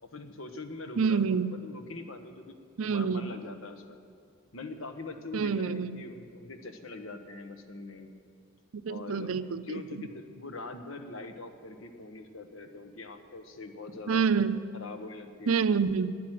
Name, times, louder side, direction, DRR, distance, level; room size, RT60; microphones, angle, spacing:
voice 1, 0.0-2.6 2.8-3.8 4.5-8.1 8.9-9.3 9.7-14.2 14.7-15.6, left 3 dB, 75° left, 6 dB, 1.2 m, -43 dB
voice 2, 1.0-1.5 2.8-3.2 5.3-6.0 8.8-10.1 14.1-14.6 15.5-16.1, right 5 dB, 90° right, 13 dB, 0.6 m, -27 dB
12.5 x 9.5 x 9.1 m, 2.4 s
head